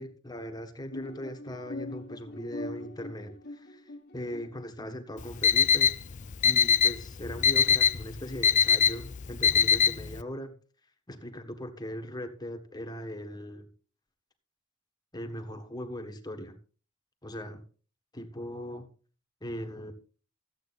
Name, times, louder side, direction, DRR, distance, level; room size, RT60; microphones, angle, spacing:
voice 1, 0.0-6.0 6.4-10.6 11.1-13.7 15.1-16.6 17.2-17.6 18.1-18.9 19.4-19.9, equal, 20° left, 5 dB, 1.5 m, -39 dB
sound 1, 0.9-4.6, left 1 dB, 55° left, 1.5 m, -42 dB
Alarm, 5.2-10.2, left 7 dB, 35° left, 0.4 m, -23 dB
14.0 x 8.5 x 4.1 m, 0.39 s
head